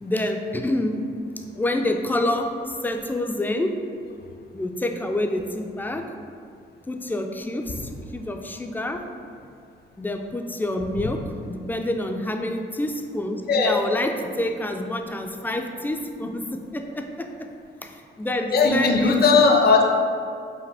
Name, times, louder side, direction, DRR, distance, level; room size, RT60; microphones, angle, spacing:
voice 1, 0.0-1.1 1.5-3.7 4.5-6.0 6.8-9.0 10.0-11.2 11.4-17.3 17.8-19.5, left 1 dB, 10° left, 4 dB, 0.3 m, -27 dB
voice 2, 13.5-13.8 18.5-19.9, left 4 dB, 50° left, 2 dB, 0.6 m, -17 dB
4.8 x 2.5 x 3.4 m, 2.3 s
cardioid pair, 90°, 20 cm